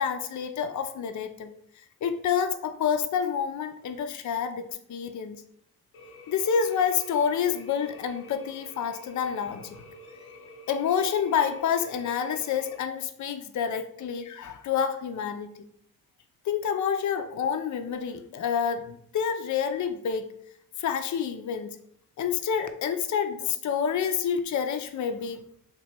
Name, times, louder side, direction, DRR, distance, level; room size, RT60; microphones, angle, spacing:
voice 1, 0.0-1.5 2.0-5.4 6.3-9.8 10.7-15.5 16.5-20.3 20.8-21.8 22.2-25.4, left 7 dB, 45° left, 7 dB, 0.5 m, -28 dB
sound 1, 5.9-12.8, left 1 dB, 90° left, 0.8 m, -48 dB
3.0 x 2.9 x 4.4 m, 0.67 s
supercardioid pair, 40°, 41 cm